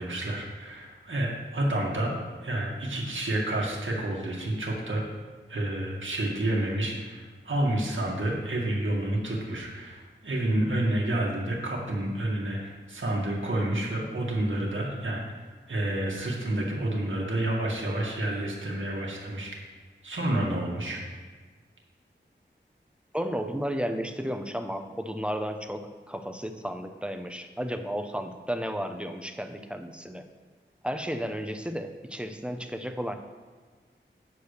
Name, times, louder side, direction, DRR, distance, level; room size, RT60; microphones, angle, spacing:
voice 1, 0.0-2.1 2.4-5.0 5.5-15.2 15.7-19.6 20.0-21.0, right 1 dB, 80° right, -2 dB, 1.9 m, -29 dB
voice 2, 23.1-30.3 30.8-33.2, equal, 5° right, 6 dB, 0.8 m, -33 dB
9.7 x 4.9 x 6.6 m, 1.5 s
wide cardioid pair, 70°, 20 cm